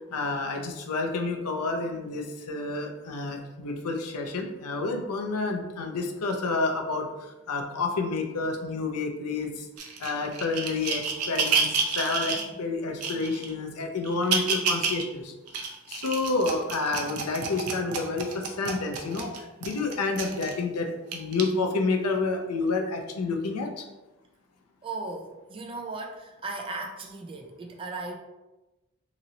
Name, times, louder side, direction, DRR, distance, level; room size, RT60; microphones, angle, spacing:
voice 1, 0.1-7.1 7.5-9.5 10.0-15.3 15.9-18.3 18.6-19.3 19.6-20.9 21.1-23.7, left 3 dB, 90° left, 3 dB, 0.6 m, -29 dB
sound 1, 9.8-12.5 13.0-13.5 14.0-15.0 15.5-20.6 21.1-21.4 22.2-22.3, right 5 dB, 90° right, 0.6 m, -29 dB
voice 2, 24.8-28.2, right 3 dB, 25° right, 2 dB, 0.4 m, -37 dB
3.0 x 2.7 x 3.9 m, 1.1 s
head